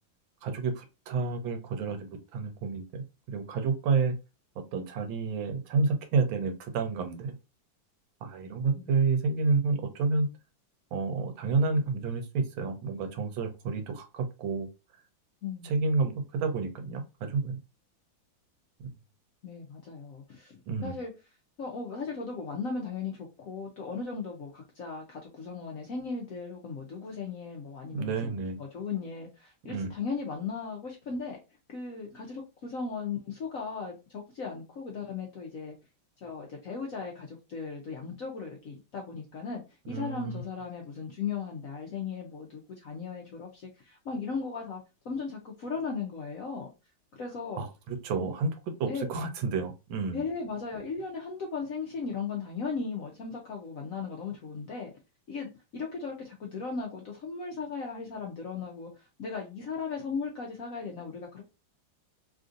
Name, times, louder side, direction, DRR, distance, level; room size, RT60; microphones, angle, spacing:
voice 1, 0.4-4.1 4.7-7.4 8.2-10.3 10.9-14.7 15.6-17.6 20.7-21.0 27.9-28.6 29.7-29.9 39.9-40.4 47.6-48.5 48.8-50.2, right 4 dB, 85° right, 1.4 m, -30 dB
voice 2, 15.4-15.8 19.4-21.1 21.6-31.4 31.7-35.7 36.2-46.7 47.1-47.7 48.2-48.3 48.9-49.1 50.1-54.9 55.3-58.9 59.2-61.4, left 5 dB, 70° left, 0.8 m, -37 dB
3.4 x 2.5 x 2.5 m
omnidirectional pair, 2.1 m